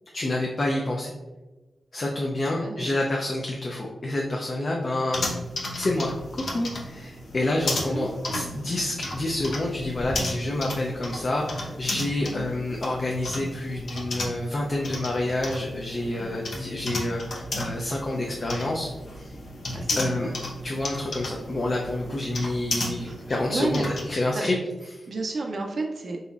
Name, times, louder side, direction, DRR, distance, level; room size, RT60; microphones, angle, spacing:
voice 1, 0.1-1.1 1.9-5.2 5.8-6.1 6.3-18.9 19.2-19.4 20.0-20.3 20.6-24.6 24.9-25.1, left 1 dB, 40° left, -1 dB, 0.5 m, -28 dB
voice 2, 2.4-2.9 7.8-8.6 12.2-12.5 16.1-16.5 19.7-20.4 23.0-23.8 24.3-24.5 25.1-26.2, right 3 dB, 50° right, 1 dB, 0.4 m, -33 dB
sound 1, 5.1-24.1, left 1 dB, 65° left, 0.7 m, -34 dB
4.1 x 3.9 x 2.4 m, 1.1 s
wide cardioid pair, 125°, 0 cm